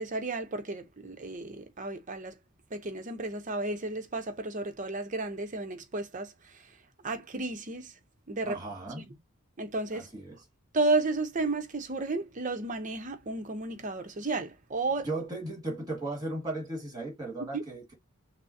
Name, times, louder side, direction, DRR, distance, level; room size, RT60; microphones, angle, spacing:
voice 1, 0.0-2.4 2.7-6.7 7.0-7.9 8.3-8.6 9.0-9.1 9.6-10.1 10.7-15.1 17.5-17.6, right 2 dB, 35° right, 0.7 m, -32 dB
voice 2, 8.4-9.0 9.9-10.4 15.0-17.9, right 2 dB, 20° right, 1.8 m, -36 dB
5.9 x 2.1 x 2.6 m
head